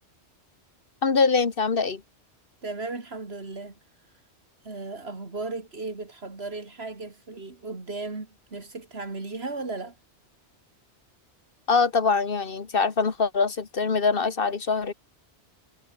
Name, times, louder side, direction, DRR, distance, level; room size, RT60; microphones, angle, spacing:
voice 1, 1.0-2.0 11.7-14.9, left 4 dB, 50° left, 1.7 m, -23 dB
voice 2, 2.6-3.7 4.6-10.0, right 3 dB, 60° right, 3.4 m, -36 dB
omnidirectional pair, 1.2 m